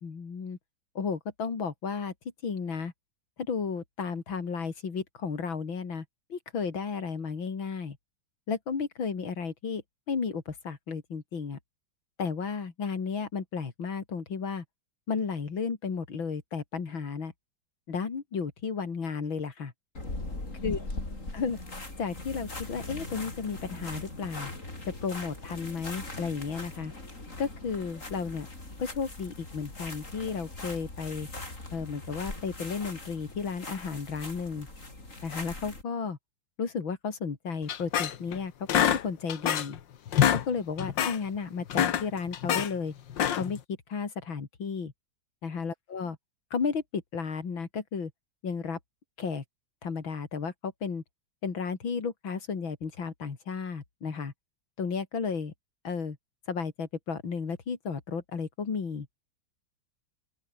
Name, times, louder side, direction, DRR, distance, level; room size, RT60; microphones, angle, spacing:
voice 1, 0.0-0.6 1.0-2.1 2.4-2.9 3.5-6.1 6.3-8.0 8.5-11.6 12.2-14.6 15.1-17.3 17.9-19.7 20.6-20.9 21.3-21.6 22.0-24.5 24.9-26.9 27.4-28.5 28.8-31.3 31.7-34.7 35.2-36.2 36.6-38.5 38.9-39.8 40.3-42.9 43.3-43.6 43.9-44.9 45.4-46.2 46.5-48.1 48.4-48.8 49.2-49.4 49.8-51.0 51.4-54.3 54.8-55.5 55.8-56.2 56.5-59.1, left 5 dB, 90° left, 3.6 m, -33 dB
sound 1, 19.9-35.8, left 2 dB, 40° left, 6.0 m, -40 dB
sound 2, 37.7-38.4 38.7-39.8 40.1-40.5 40.8-41.2 41.6-42.7 43.1-43.6, left 10 dB, 70° left, 1.9 m, -26 dB
open air
omnidirectional pair, 2.1 m